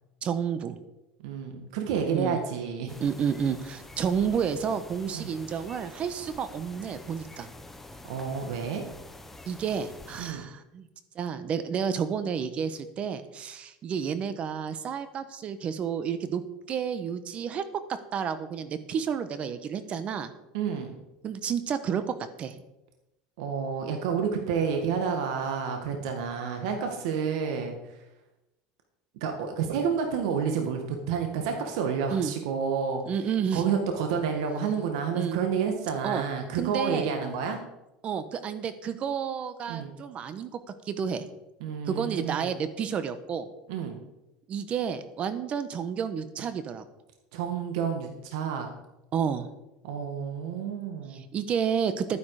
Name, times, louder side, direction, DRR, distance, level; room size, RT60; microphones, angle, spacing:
voice 1, 0.2-0.8 2.1-2.4 3.0-7.5 9.5-10.9 11.1-16.4 16.7-17.6 18.1-20.3 21.2-22.0 22.4-22.6 32.1-32.3 33.1-33.7 35.1-35.4 36.0-36.2 36.5-37.1 38.0-40.6 40.9-41.3 41.9-43.5 44.5-46.8 49.1-49.5 51.1-52.2, right 7 dB, 40° right, 12 dB, 1.2 m, -30 dB
voice 2, 1.2-3.0 5.1-5.3 8.0-8.8 10.2-10.5 20.5-21.0 23.4-28.0 29.2-33.0 33.5-37.6 39.7-39.9 41.6-42.6 43.7-44.0 47.3-48.7 49.8-51.2, right 6 dB, 80° right, 4 dB, 1.9 m, -30 dB
sound 1, 2.9-10.3, left 2 dB, 10° left, 1.1 m, -47 dB
11.5 x 10.0 x 5.0 m, 0.94 s
supercardioid pair, 125°, 3 cm